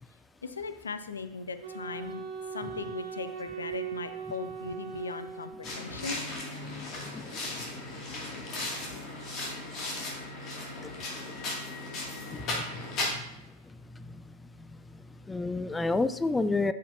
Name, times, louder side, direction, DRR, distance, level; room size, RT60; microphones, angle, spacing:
voice 1, 0.4-2.2 2.5-6.2, left 4 dB, 75° left, 12 dB, 0.6 m, -38 dB
Wind instrument woodwind instrument, 1.6-6.1, right 7 dB, 70° right, 2.4 m, -40 dB
sound 1, 5.6-13.1, left 2 dB, 35° left, 2.4 m, -36 dB
voice 2, 12.3-12.6 15.3-16.7, left 3 dB, 10° left, 13 dB, 0.3 m, -29 dB
12.5 x 5.7 x 2.8 m, 1.0 s
figure-of-eight pair, 90°, 0 cm